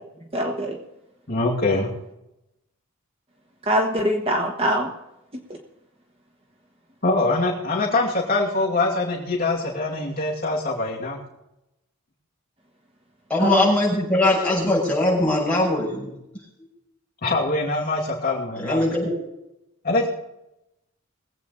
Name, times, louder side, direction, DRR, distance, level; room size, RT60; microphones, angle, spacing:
voice 1, 0.3-0.8 3.7-4.9 13.4-13.7, equal, 25° right, 1 dB, 1.4 m, -23 dB
voice 2, 1.3-1.9 7.0-11.2 17.2-18.8 19.8-20.1, left 2 dB, 45° left, -3 dB, 2.5 m, -23 dB
voice 3, 13.3-16.2 18.5-19.1, left 1 dB, 5° left, -7 dB, 6.5 m, -21 dB
21.0 x 8.4 x 4.1 m, 0.88 s
head